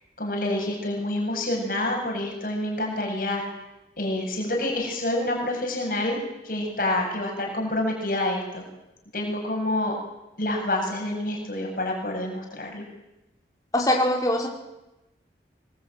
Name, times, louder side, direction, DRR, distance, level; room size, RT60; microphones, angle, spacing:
voice 1, 0.2-3.4 4.0-6.2 6.4-8.6 9.1-9.9 10.4-12.8, left 1 dB, 50° left, 1 dB, 7.7 m, -27 dB
voice 2, 13.7-14.5, left 1 dB, 20° left, 0 dB, 5.4 m, -22 dB
24.5 x 23.0 x 9.4 m, 0.97 s
head